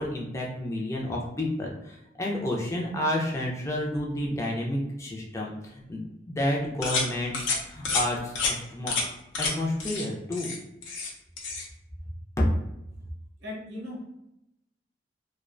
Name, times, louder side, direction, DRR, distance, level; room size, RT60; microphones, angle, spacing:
voice 1, 0.0-8.9 9.4-10.5 12.4-12.5, left 1 dB, 15° left, -2 dB, 0.4 m, -30 dB
sound 1, 6.8-7.1 7.3-7.6 7.8-8.0 8.4-8.5 8.9-9.1 9.3-9.5 9.8-10.0 10.3-11.1 11.4-11.7, left 4 dB, 85° left, 0.6 m, -28 dB
voice 2, 13.4-14.0, left 1 dB, 60° right, -4 dB, 0.7 m, -37 dB
2.3 x 2.1 x 2.4 m, 0.86 s
head